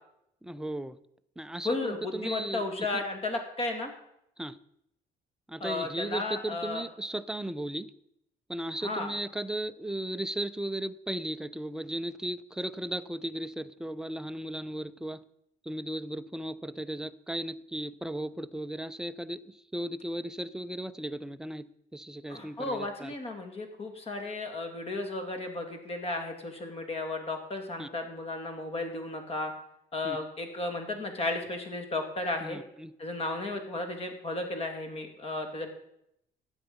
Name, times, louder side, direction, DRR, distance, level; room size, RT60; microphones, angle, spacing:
voice 1, 0.4-1.0 1.4-2.6 4.4-4.6 5.5-7.9 8.5-15.2 15.6-23.1 27.8-27.9 30.0-30.2 32.4-32.9, right 1 dB, 5° right, 11 dB, 0.5 m, -36 dB
voice 2, 1.6-3.9 5.6-6.8 8.8-9.2 22.3-29.5 29.9-32.6 33.0-35.7, left 2 dB, 35° left, 4 dB, 2.5 m, -34 dB
12.5 x 9.0 x 5.2 m, 0.76 s
cardioid pair, 110°, 17 cm